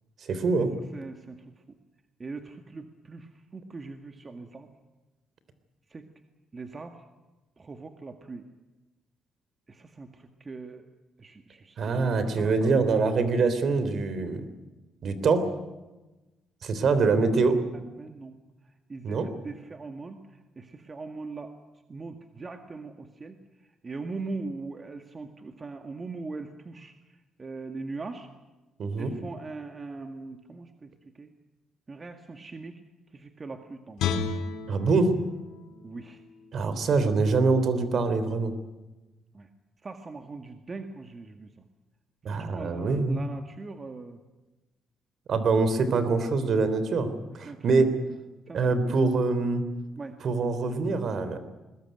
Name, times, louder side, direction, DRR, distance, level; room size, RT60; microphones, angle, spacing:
voice 1, 0.3-0.7 11.8-14.4 15.0-15.4 16.6-17.6 19.0-19.3 28.8-29.1 34.7-35.1 36.5-38.5 42.2-43.2 45.3-47.1 47.3-47.9 48.5-49.6 50.2-51.4, right 4 dB, 60° right, 11 dB, 3.4 m, -24 dB
voice 2, 0.9-1.4 2.2-4.7 5.9-6.1 6.5-7.0 7.6-8.5 9.7-10.9 11.2-12.8 17.7-18.4 18.9-20.2 20.6-21.5 21.9-23.4 23.8-26.9 27.4-28.3 29.0-30.9 31.2-31.3 31.9-32.7 33.1-34.0 35.8-36.2 39.3-39.5 39.8-41.5 42.4-44.2 45.9-46.0 47.5-47.8 48.5-48.8 50.0-50.2, right 3 dB, 30° right, 6 dB, 1.9 m, -40 dB
Guitar, 34.0-37.1 37.5-37.7, left 6 dB, 85° left, 3.0 m, -34 dB
21.5 x 20.5 x 9.3 m, 1.1 s
cardioid pair, 90°, 0 cm